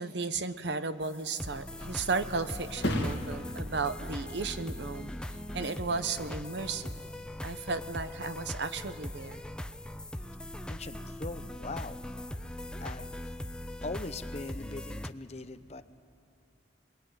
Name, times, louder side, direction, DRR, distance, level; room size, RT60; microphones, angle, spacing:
voice 1, 0.0-5.1 5.5-6.9 7.4-9.4, right 4 dB, 70° right, 11 dB, 0.9 m, -34 dB
sound 1, 1.0-15.1, left 1 dB, 5° left, 0.6 m, -40 dB
Thump thud, 1.2-8.7 9.1-9.5, left 1 dB, 65° left, 2.3 m, -40 dB
voice 2, 10.7-12.0 12.8-13.1 13.8-15.8, left 3 dB, 35° left, 11 dB, 0.8 m, -40 dB
22.0 x 21.5 x 9.4 m, 2.6 s
head